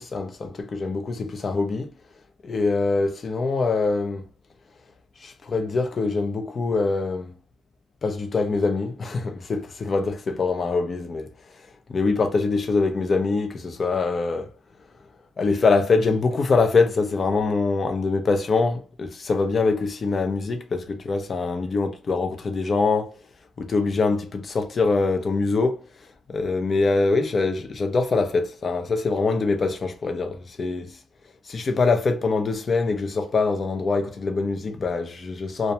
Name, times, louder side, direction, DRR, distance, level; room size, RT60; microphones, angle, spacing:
voice 1, 0.0-1.9 2.4-4.2 5.2-7.3 8.0-11.3 11.9-14.5 15.4-23.2 23.6-25.8 26.3-31.0 31.5-35.7, left 3 dB, 40° left, 0.5 m, -24 dB
2.2 x 2.1 x 2.7 m
cardioid pair, 90°, 0 cm